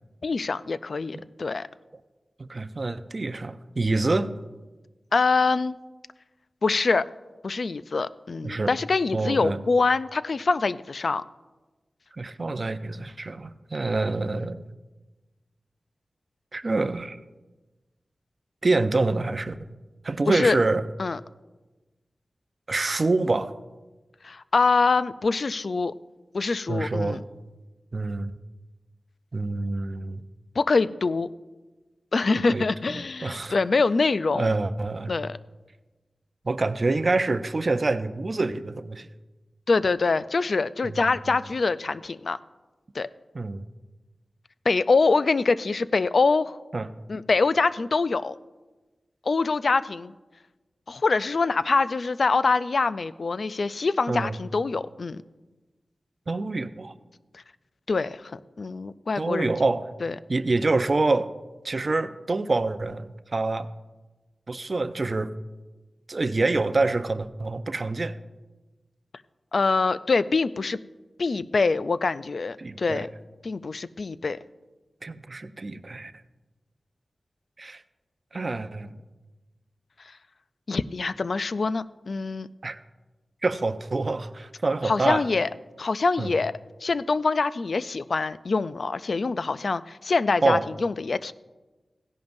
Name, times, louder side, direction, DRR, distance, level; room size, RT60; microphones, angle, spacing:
voice 1, 0.2-1.7 5.1-5.8 6.6-7.1 7.4-11.2 20.3-20.6 21.0-21.2 24.2-25.9 26.3-27.2 30.6-31.3 32.1-34.5 35.1-35.4 39.7-42.4 42.9-43.1 44.7-46.6 47.1-48.4 49.3-50.1 50.9-55.2 57.3-57.4 57.9-59.5 60.0-60.1 69.5-70.8 71.2-73.1 73.4-74.4 80.7-82.5 84.8-85.5 85.8-86.5 86.8-91.3, left 4 dB, 65° left, 15 dB, 0.3 m, -24 dB
voice 2, 2.4-4.3 8.4-8.7 9.1-9.6 12.1-14.6 16.5-17.2 18.6-19.6 20.0-20.8 22.7-23.5 26.7-27.2 27.9-28.3 29.3-30.2 32.5-32.7 32.9-33.6 34.3-35.1 36.4-39.1 40.8-40.9 43.3-43.6 46.7-46.9 54.1-54.4 56.3-56.9 59.2-59.9 60.3-61.3 61.6-63.7 64.5-65.3 66.1-68.2 72.6-73.1 75.0-76.1 77.6-77.8 78.3-78.9 82.6-82.8 83.4-85.3 86.2-86.3 90.4-90.6, right 3 dB, 50° right, 10 dB, 0.5 m, -26 dB
16.0 x 10.5 x 2.6 m, 1.2 s
cardioid pair, 55°, 0 cm